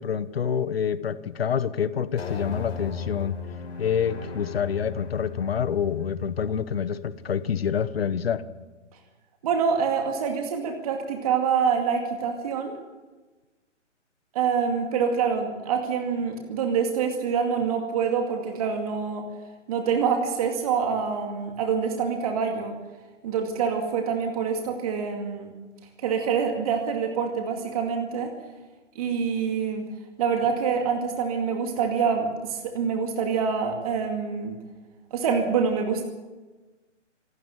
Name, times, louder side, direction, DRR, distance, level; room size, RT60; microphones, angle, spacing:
voice 1, 0.0-3.4 3.8-8.4, left 7 dB, 55° left, 15 dB, 1.2 m, -27 dB
sound 1, 2.2-8.7, left 6 dB, 70° left, 5.1 m, -38 dB
voice 2, 9.4-12.8 14.3-19.3 19.7-22.8 23.2-25.6 26.0-28.3 29.0-29.9 30.2-34.6 35.1-36.0, right 6 dB, 30° right, 3 dB, 2.3 m, -26 dB
26.5 x 12.0 x 9.1 m, 1.2 s
hypercardioid pair, 160°, 37 cm